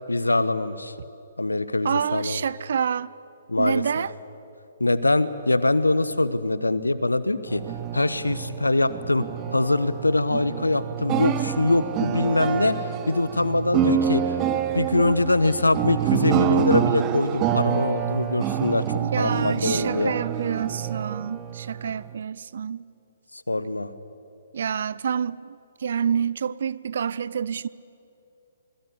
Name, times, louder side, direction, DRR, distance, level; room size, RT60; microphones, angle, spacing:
voice 1, 0.1-0.9 1.4-2.4 3.5-4.0 4.8-7.6 7.9-9.2 9.5-12.8 13.1-14.4 14.7-20.1 23.5-23.9, left 2 dB, 85° left, 1.1 m, -23 dB
voice 2, 1.8-3.1 3.6-4.1 19.0-22.9 24.5-27.7, right 7 dB, 60° right, 0.6 m, -28 dB
sound 1, 7.5-22.2, right 9 dB, 25° right, 1.2 m, -27 dB
26.5 x 21.0 x 8.4 m
figure-of-eight pair, 130°, 0 cm